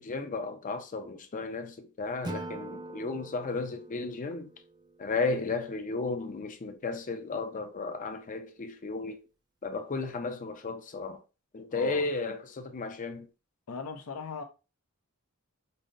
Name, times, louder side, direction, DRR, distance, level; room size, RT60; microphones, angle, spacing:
voice 1, 0.0-4.5 5.0-9.2 9.6-11.2 11.5-13.3, left 3 dB, 35° left, 0.5 m, -34 dB
Acoustic guitar / Strum, 2.2-5.4, right 2 dB, 20° right, 0.4 m, -43 dB
voice 2, 11.7-12.0 13.7-14.4, left 4 dB, 85° left, 0.6 m, -38 dB
5.4 x 2.1 x 2.5 m
head